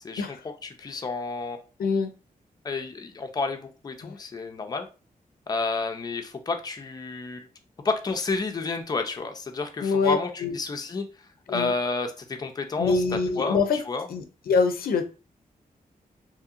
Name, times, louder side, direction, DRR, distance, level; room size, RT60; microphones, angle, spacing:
voice 1, 0.6-1.6 2.6-4.9 5.5-7.5 7.8-11.1 11.5-13.0 13.4-14.1, left 3 dB, 25° left, 0.4 m, -30 dB
voice 2, 1.8-2.1 4.0-4.1 9.8-10.5 11.5-11.7 12.8-13.8 14.1-15.0, left 4 dB, 90° left, 0.4 m, -24 dB
2.7 x 2.7 x 2.4 m
wide cardioid pair, 125°, 15 cm